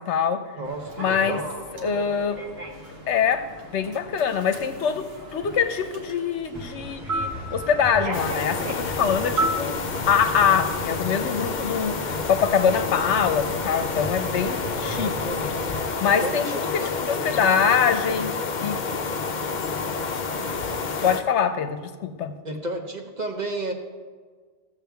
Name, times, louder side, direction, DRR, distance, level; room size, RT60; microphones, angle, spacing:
voice 1, 0.0-0.5 1.0-1.4 1.8-2.4 3.1-9.8 10.1-15.1 15.4-15.6 16.0-16.5 16.7-18.8 21.0-22.4, left 7 dB, 75° left, 9 dB, 1.0 m, -24 dB
voice 2, 0.6-1.4 14.6-15.5 16.2-16.9 22.4-23.7, right 2 dB, 40° right, 3 dB, 0.9 m, -32 dB
Human voice / Subway metro underground, 0.6-10.1, right 2 dB, 55° right, 1.4 m, -34 dB
sound 1, 6.5-15.8, equal, 15° right, 1.2 m, -38 dB
sound 2, 8.1-21.2, left 4 dB, 50° left, 0.7 m, -29 dB
15.0 x 7.2 x 3.4 m, 1.5 s
omnidirectional pair, 1.2 m